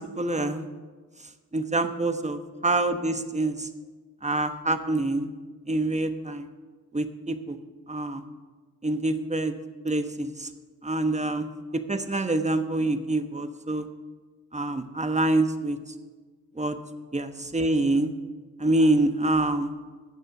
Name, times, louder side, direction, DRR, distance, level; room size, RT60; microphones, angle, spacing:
voice 1, 0.2-0.7 1.5-3.7 4.2-5.3 5.7-6.5 6.9-7.6 7.9-8.2 8.8-9.5 9.8-10.5 10.8-11.5 11.9-13.9 14.5-15.8 16.6-16.7 17.1-18.1 18.6-19.7, right 2 dB, 20° right, 8 dB, 1.1 m, -26 dB
17.0 x 6.6 x 6.0 m, 1.4 s
cardioid pair, 55°, 36 cm